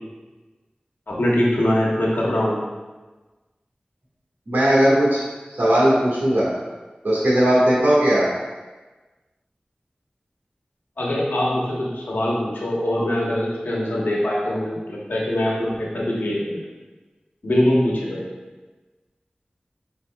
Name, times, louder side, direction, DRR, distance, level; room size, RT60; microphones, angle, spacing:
voice 1, 1.1-2.6 11.0-16.7 17.4-18.2, left 1 dB, 85° left, -4 dB, 0.9 m, -22 dB
voice 2, 4.5-5.2 5.5-6.5 7.0-8.3, equal, 85° right, -7 dB, 1.4 m, -17 dB
5.2 x 4.1 x 2.2 m, 1.2 s
wide cardioid pair, 40°, 3 cm